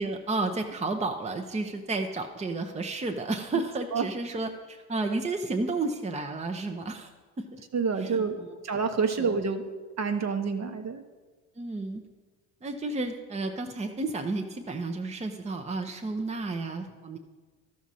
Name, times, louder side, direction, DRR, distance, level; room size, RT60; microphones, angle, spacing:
voice 1, 0.0-7.1 7.4-7.6 8.0-8.6 9.2-9.3 11.6-12.0 12.6-17.2, right 3 dB, 15° right, 4 dB, 0.7 m, -32 dB
voice 2, 7.7-8.4 8.6-9.7 10.0-11.0, right 5 dB, 35° right, 8 dB, 1.0 m, -28 dB
13.0 x 6.3 x 4.2 m, 1.3 s
hypercardioid pair, 65°, 45 cm